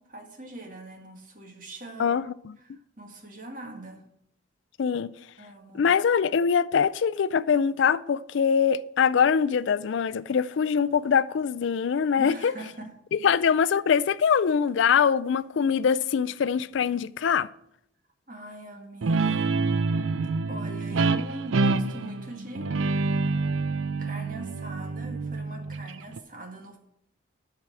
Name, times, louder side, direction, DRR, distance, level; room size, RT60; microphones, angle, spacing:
voice 1, 0.0-2.2 2.6-4.0 5.4-5.9 12.2-12.9 18.3-19.7 20.5-22.7 24.0-26.8, right 1 dB, 45° right, 1.9 m, -42 dB
voice 2, 4.8-5.1 5.7-12.5 13.1-17.5, left 7 dB, 70° left, 0.4 m, -23 dB
Guitar, 19.0-26.2, right 3 dB, 85° right, 0.5 m, -27 dB
12.0 x 4.8 x 7.5 m
head